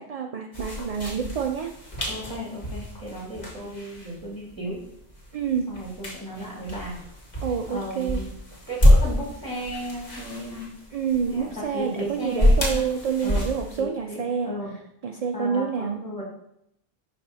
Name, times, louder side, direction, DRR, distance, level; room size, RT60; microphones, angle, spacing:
voice 1, 0.0-1.7 5.3-5.8 7.4-8.3 10.9-14.6 15.0-16.0, right 6 dB, 55° right, 4 dB, 0.4 m, -28 dB
sound 1, 0.5-13.8, left 1 dB, 40° left, 1.4 m, -27 dB
voice 2, 2.0-4.8 5.7-7.0 7.7-8.3 8.7-10.7 11.3-12.8 13.2-13.5 13.8-14.7 15.3-16.2, equal, 20° left, -4 dB, 2.5 m, -35 dB
11.0 x 4.2 x 2.7 m, 0.74 s
omnidirectional pair, 1.1 m